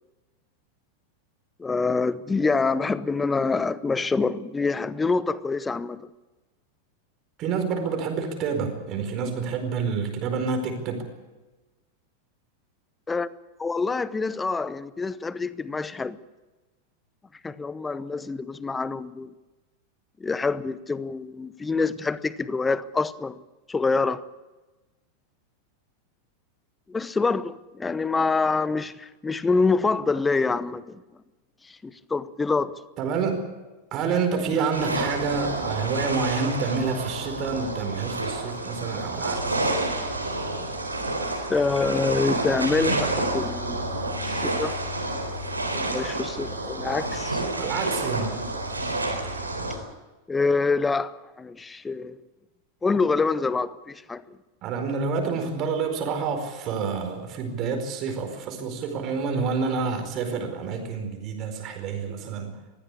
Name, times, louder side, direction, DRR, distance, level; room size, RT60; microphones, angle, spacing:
voice 1, 1.6-6.1 13.1-13.3 13.6-16.2 17.4-19.3 20.2-23.4 23.7-24.2 26.9-31.0 31.7-32.7 41.5-43.9 44.2-44.7 45.7-47.4 50.3-52.2 52.8-54.2, left 4 dB, 10° left, 0.8 m, -26 dB
voice 2, 7.4-11.0 33.0-33.5 33.9-39.6 47.6-48.4 54.6-62.5, right 5 dB, 35° right, 4.7 m, -28 dB
sound 1, 34.7-49.8, right 2 dB, 80° right, 4.0 m, -29 dB
21.5 x 15.5 x 8.5 m
figure-of-eight pair, 90°, 0 cm